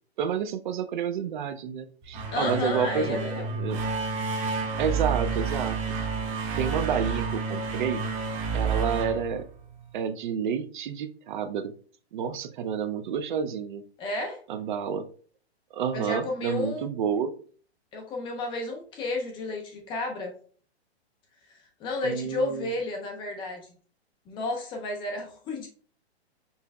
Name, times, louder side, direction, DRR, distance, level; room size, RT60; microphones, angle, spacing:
voice 1, 0.2-3.8 4.8-5.8 6.6-8.0 8.5-9.5 9.9-11.7 12.1-13.8 14.5-15.1 15.7-17.3 22.0-22.7, right 7 dB, 50° right, 10 dB, 0.5 m, -29 dB
sound 1, 2.0-10.0, right 5 dB, 20° right, 0.9 m, -30 dB
voice 2, 2.3-3.5 14.0-14.4 15.9-16.8 17.9-20.3 21.5-23.8 24.3-25.7, left 2 dB, 15° left, 2 dB, 0.5 m, -32 dB
5.5 x 3.8 x 2.2 m, 0.44 s
hypercardioid pair, 140°, 33 cm